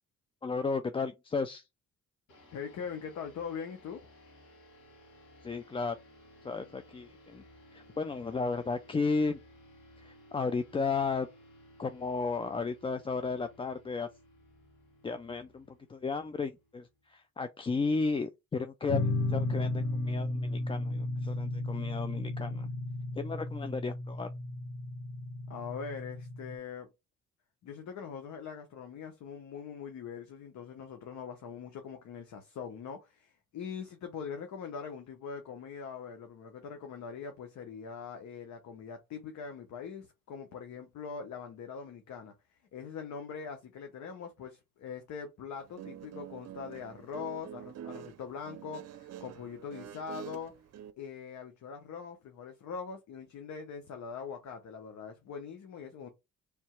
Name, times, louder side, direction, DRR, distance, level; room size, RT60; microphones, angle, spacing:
voice 1, 0.4-1.6 5.4-6.0 6.4-7.4 7.7-9.4 10.0-11.3 11.8-14.1 15.0-22.7 23.2-24.3, left 4 dB, 20° left, 0.3 m, -34 dB
sound 1, 2.3-17.1, equal, 85° left, 2.1 m, -58 dB
voice 2, 2.5-4.0 25.5-26.9 27.6-42.3 42.7-50.5 51.0-56.1, left 6 dB, 70° left, 0.9 m, -42 dB
sound 2, 18.9-26.5, left 2 dB, 40° left, 0.9 m, -34 dB
Guitar, 45.6-50.9, right 10 dB, 60° right, 0.6 m, -46 dB
3.4 x 2.8 x 4.4 m
cardioid pair, 90°, 30 cm